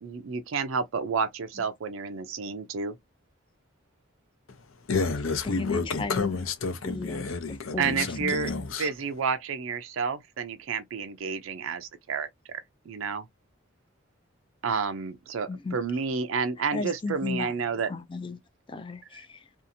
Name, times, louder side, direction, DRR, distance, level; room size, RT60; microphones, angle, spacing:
voice 1, 0.0-3.0 7.8-8.5 8.8-12.3 12.9-13.3 14.6-17.9, right 5 dB, 75° right, 0.4 m, -30 dB
voice 2, 4.9-8.9, left 4 dB, 75° left, 0.7 m, -30 dB
voice 3, 5.4-6.3 6.8-8.9 15.5-15.8 16.7-17.5 17.8-18.4 18.7-19.5, left 3 dB, 25° left, 0.3 m, -35 dB
2.7 x 2.4 x 2.6 m
head